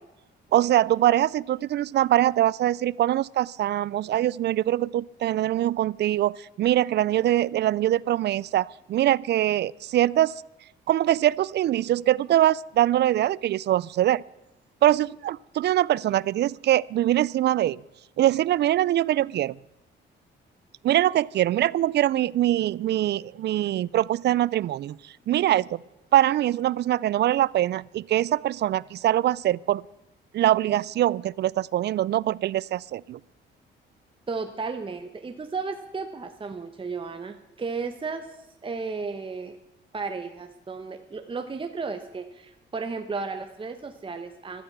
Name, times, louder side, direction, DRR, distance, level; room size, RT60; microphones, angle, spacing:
voice 1, 0.5-10.3 10.9-14.2 14.8-17.8 18.2-19.5 20.8-25.0 25.3-25.8 26.1-29.8 30.3-33.2, right 13 dB, 60° right, 24 dB, 0.4 m, -23 dB
voice 2, 34.3-38.3 38.6-39.6 39.9-44.6, right 4 dB, 25° right, 7 dB, 1.0 m, -34 dB
15.5 x 12.0 x 6.0 m, 0.93 s
cardioid pair, 90°, 20 cm